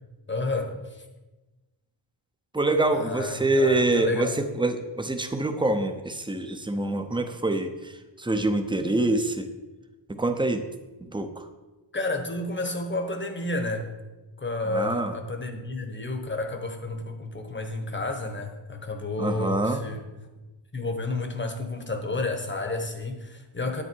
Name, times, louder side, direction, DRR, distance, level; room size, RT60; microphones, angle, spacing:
voice 1, 0.3-1.0 2.9-4.3 11.9-13.9 14.4-20.0 20.7-23.8, left 2 dB, 25° left, 5 dB, 1.1 m, -31 dB
voice 2, 2.5-9.5 10.2-10.6 11.0-11.5 14.7-15.2 19.2-19.8, right 2 dB, 10° right, 7 dB, 0.7 m, -25 dB
9.9 x 9.0 x 4.6 m, 1.2 s
wide cardioid pair, 170°, 46 cm